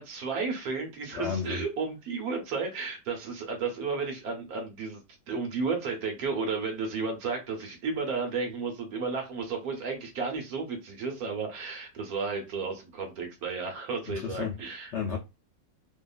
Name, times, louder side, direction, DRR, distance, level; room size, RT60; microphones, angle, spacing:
voice 1, 0.0-5.0 5.3-14.9, right 4 dB, 65° right, 1.1 m, -33 dB
voice 2, 1.1-1.6 14.1-14.5 14.9-15.2, left 6 dB, 80° left, 0.6 m, -32 dB
2.8 x 2.3 x 2.3 m
omnidirectional pair, 1.9 m